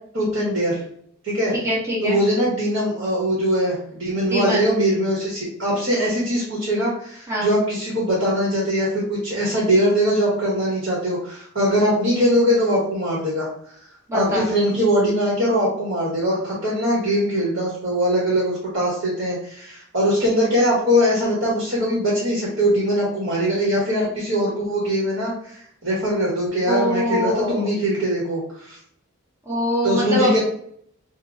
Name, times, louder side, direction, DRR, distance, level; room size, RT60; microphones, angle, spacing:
voice 1, 0.1-0.8 1.2-1.5 2.0-28.8 29.8-30.4, equal, 60° right, -5 dB, 1.4 m, -21 dB
voice 2, 1.5-2.2 4.3-4.7 7.3-7.5 14.1-14.5 26.6-27.7 29.5-30.4, equal, 15° right, -6 dB, 1.0 m, -23 dB
3.7 x 2.5 x 3.8 m, 0.65 s
head